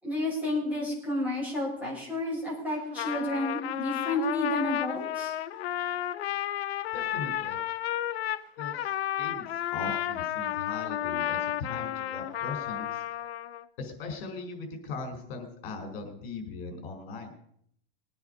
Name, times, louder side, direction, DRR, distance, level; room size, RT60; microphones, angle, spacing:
voice 1, 0.0-5.3, left 1 dB, 5° right, -6 dB, 6.1 m, -31 dB
Trumpet, 2.8-13.6, left 12 dB, 80° left, 1.0 m, -32 dB
voice 2, 6.9-7.6 8.6-13.0 13.8-17.3, left 4 dB, 55° left, 5 dB, 4.6 m, -39 dB
20.5 x 9.5 x 5.2 m, 0.65 s
supercardioid pair, 165°, 31 cm